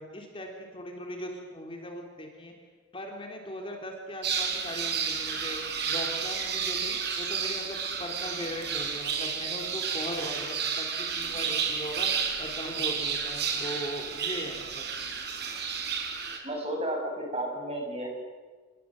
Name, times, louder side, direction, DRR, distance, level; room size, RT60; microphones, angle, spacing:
voice 1, 0.0-2.5 2.9-5.6 5.9-12.1 12.4-14.8, equal, 25° left, 2 dB, 3.5 m, -39 dB
sound 1, 4.2-16.4, right 6 dB, 55° right, 4.2 m, -31 dB
voice 2, 16.4-18.1, right 1 dB, 30° right, 1 dB, 6.9 m, -32 dB
27.5 x 22.5 x 7.8 m, 1.4 s
head